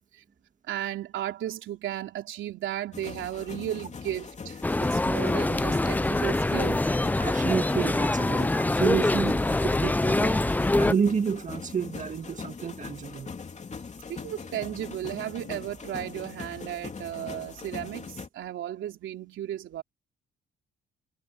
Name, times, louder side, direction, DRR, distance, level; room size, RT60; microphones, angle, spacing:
voice 1, 0.7-6.9 14.1-19.8, right 12 dB, 80° right, 3.4 m, -35 dB
sound 1, 2.9-18.3, left 5 dB, 35° left, 2.9 m, -41 dB
sound 2, 4.6-10.9, left 2 dB, 10° left, 0.5 m, -24 dB
voice 2, 7.2-10.4 10.8-13.3, right 6 dB, 40° right, 1.8 m, -30 dB
cardioid pair, 90°, 20 cm